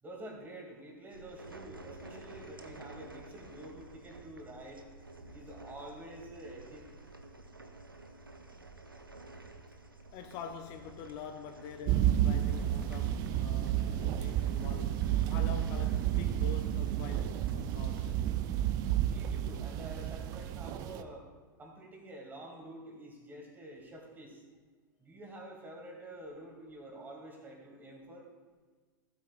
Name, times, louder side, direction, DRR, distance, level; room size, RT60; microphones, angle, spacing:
voice 1, 0.0-4.9 5.3-7.0 19.1-21.3 21.6-24.4 25.0-28.2, right 1 dB, 15° right, 2.6 m, -48 dB
sound 1, 1.1-18.3, right 2 dB, 85° right, 0.7 m, -51 dB
voice 2, 10.1-18.1, left 8 dB, 40° left, 0.6 m, -46 dB
sound 2, 11.9-21.0, right 11 dB, 35° right, 0.5 m, -31 dB
15.5 x 8.3 x 2.5 m
figure-of-eight pair, 90°, 11 cm